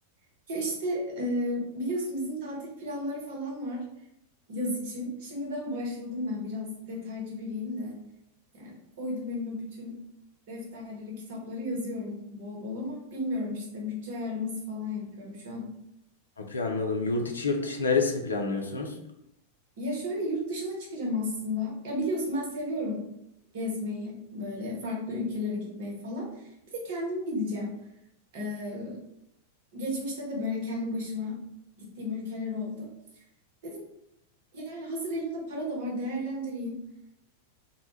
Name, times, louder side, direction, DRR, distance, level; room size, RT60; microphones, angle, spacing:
voice 1, 0.5-3.8 4.5-7.9 8.5-10.0 10.5-15.7 19.8-23.0 23.5-26.5 26.8-27.7 28.3-29.0 29.7-31.4 31.8-32.9 33.6-33.8 34.5-36.8, left 1 dB, 55° right, -2 dB, 0.9 m, -33 dB
voice 2, 16.4-18.9, left 4 dB, 75° left, 2 dB, 0.4 m, -28 dB
2.1 x 2.1 x 3.0 m, 0.80 s
figure-of-eight pair, 90°, 0 cm